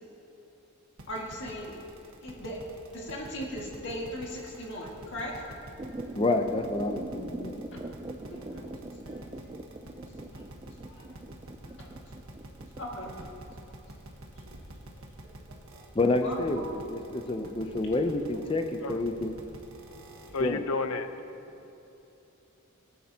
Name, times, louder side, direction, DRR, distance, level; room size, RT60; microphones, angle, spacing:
sound 1, 1.0-20.5, right 1 dB, 80° right, 1.4 m, -47 dB
voice 1, 1.1-1.8 2.2-2.6 2.9-5.4 8.3-8.7 9.0-9.3 10.3-10.4 10.8-11.1 11.8-11.9 12.8-13.4 15.2-15.6 16.2-16.7 17.4-17.6, equal, 55° left, 2.0 m, -39 dB
sound 2, 5.8-13.5, right 2 dB, 20° right, 0.4 m, -42 dB
voice 2, 6.2-7.6 15.9-19.3 20.4-20.6, left 2 dB, 25° left, 0.6 m, -28 dB
voice 3, 19.7-21.1, left 3 dB, 85° left, 0.7 m, -33 dB
18.0 x 9.5 x 2.9 m
head